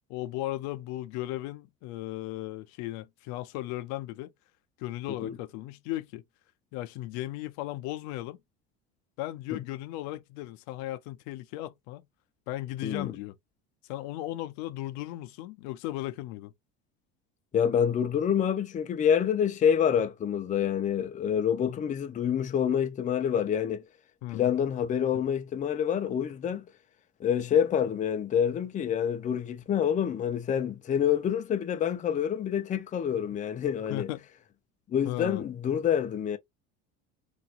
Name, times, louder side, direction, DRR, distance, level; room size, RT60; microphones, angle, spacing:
voice 1, 0.1-4.3 4.8-6.2 6.7-8.4 9.2-12.0 12.5-13.3 13.9-16.5 24.2-24.5 25.1-25.2 33.9-34.3 35.0-35.4, left 16 dB, 75° left, 0.6 m, -36 dB
voice 2, 17.5-23.8 24.3-26.6 27.2-34.1 34.9-36.4, left 8 dB, 25° left, 0.5 m, -27 dB
3.1 x 2.9 x 2.4 m
cardioid pair, 120°, 29 cm